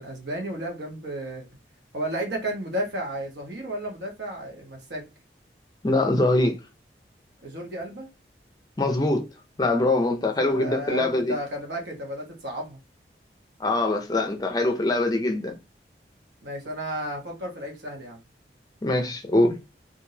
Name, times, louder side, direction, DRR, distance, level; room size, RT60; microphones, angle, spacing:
voice 1, 0.0-1.4 1.9-5.0 7.4-8.1 10.2-12.8 16.4-18.2, right 1 dB, 75° right, 1.2 m, -33 dB
voice 2, 5.8-6.6 8.8-9.3 9.6-11.4 13.6-15.6 18.8-19.6, left 2 dB, 20° left, 0.4 m, -23 dB
3.6 x 2.6 x 2.7 m
head